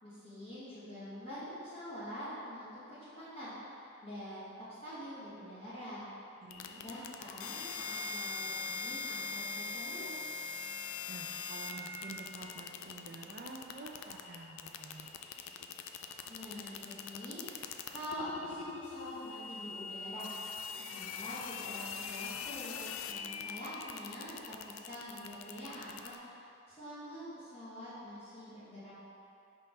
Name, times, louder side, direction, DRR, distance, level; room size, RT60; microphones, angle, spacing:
voice 1, 0.0-4.5 4.8-6.1 6.8-10.1 16.3-20.3 20.8-28.9, equal, 30° left, -12 dB, 1.4 m, -45 dB
voice 2, 6.4-6.8 11.1-15.1, right 3 dB, 45° right, 2 dB, 0.6 m, -49 dB
sound 1, 6.5-26.2, left 5 dB, 75° left, 0.4 m, -42 dB
5.6 x 4.2 x 5.3 m, 2.7 s
head